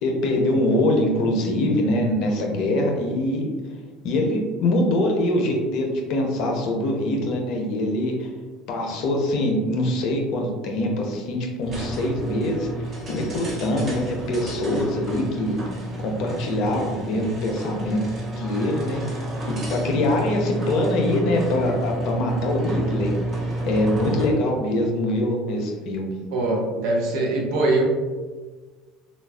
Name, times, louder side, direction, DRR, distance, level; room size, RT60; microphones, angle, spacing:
voice 1, 0.0-3.5 4.0-8.3 8.7-15.6 16.0-18.0 18.4-19.2 19.5-23.1 23.7-26.1, left 1 dB, 65° left, 2 dB, 0.6 m, -23 dB
sound 1, 11.6-24.4, right 1 dB, 40° right, 1.0 m, -30 dB
voice 2, 26.3-27.8, right 2 dB, 70° right, -2 dB, 0.8 m, -22 dB
3.5 x 2.4 x 2.3 m, 1.4 s
hypercardioid pair, 85°, 0 cm